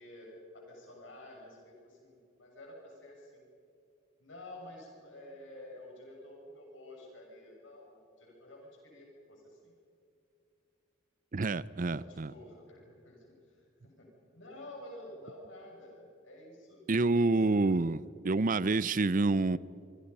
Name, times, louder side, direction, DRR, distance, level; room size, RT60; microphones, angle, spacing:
voice 1, 0.0-3.5 4.2-9.7 11.9-17.4 17.7-17.8, left 1 dB, 75° left, 6.6 m, -51 dB
voice 2, 11.3-12.3 16.9-19.6, right 3 dB, 45° right, 0.5 m, -28 dB
25.5 x 25.5 x 5.5 m
head